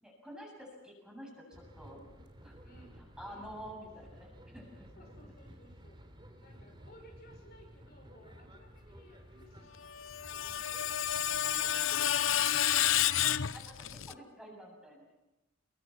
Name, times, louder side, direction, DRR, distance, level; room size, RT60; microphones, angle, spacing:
voice 1, 0.0-2.1 2.4-2.5 3.0-5.0 11.9-12.4 13.3-15.1, equal, 5° right, -1 dB, 7.9 m, -50 dB
sound 1, 1.5-12.0, equal, 25° right, 3.3 m, -55 dB
voice 2, 2.6-3.5 5.0-6.0 6.4-10.6, equal, 55° left, 2 dB, 6.3 m, -59 dB
Screech, 9.9-14.1, left 11 dB, 85° left, 0.7 m, -30 dB
27.5 x 23.0 x 6.0 m, 1.0 s
head